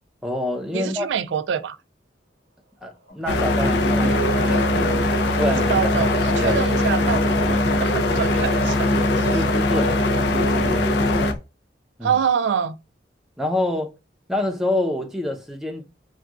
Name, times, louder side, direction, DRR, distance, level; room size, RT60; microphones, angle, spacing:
voice 1, 0.2-1.1 2.8-5.7 6.0-6.6 7.4-7.6 9.3-10.0 10.3-10.9 12.0-12.2 13.4-13.9 14.3-15.8, left 1 dB, ahead, 0.6 m, -27 dB
voice 2, 0.7-1.8 5.4-9.4 12.0-12.8, right 7 dB, 90° right, 0.3 m, -26 dB
sound 1, 2.9-7.7, right 2 dB, 70° right, 0.8 m, -40 dB
sound 2, 3.1-6.1 6.5-11.4, left 2 dB, 55° left, 0.9 m, -39 dB
sound 3, 3.3-11.3, left 1 dB, 75° left, 0.5 m, -20 dB
3.9 x 2.2 x 2.3 m
head